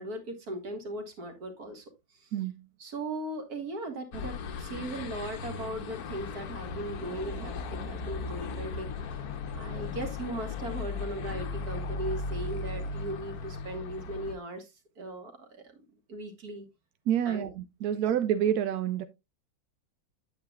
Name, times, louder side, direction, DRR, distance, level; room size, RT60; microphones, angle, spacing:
voice 1, 0.0-1.9 2.1-2.3 2.8-8.9 9.5-15.8 16.1-16.7 17.3-17.5, right 1 dB, 50° right, 2.1 m, -38 dB
sound 1, 4.1-14.3, left 4 dB, 60° left, 1.2 m, -37 dB
voice 2, 17.1-19.0, right 10 dB, 70° right, 1.0 m, -28 dB
9.3 x 8.6 x 2.3 m
omnidirectional pair, 2.1 m